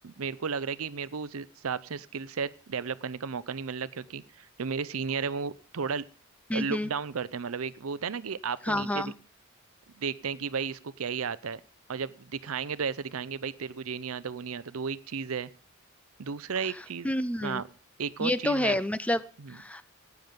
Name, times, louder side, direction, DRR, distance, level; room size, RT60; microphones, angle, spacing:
voice 1, 0.0-6.1 6.5-9.1 10.0-11.6 11.9-15.5 16.2-17.1 17.4-17.7 18.0-18.8 19.4-19.6, right 6 dB, 85° right, 18 dB, 0.6 m, -34 dB
voice 2, 6.5-6.9 8.7-9.1 17.0-17.6 18.2-19.2 19.5-19.9, left 1 dB, 5° left, 15 dB, 0.5 m, -28 dB
15.0 x 9.4 x 5.2 m, 0.42 s
head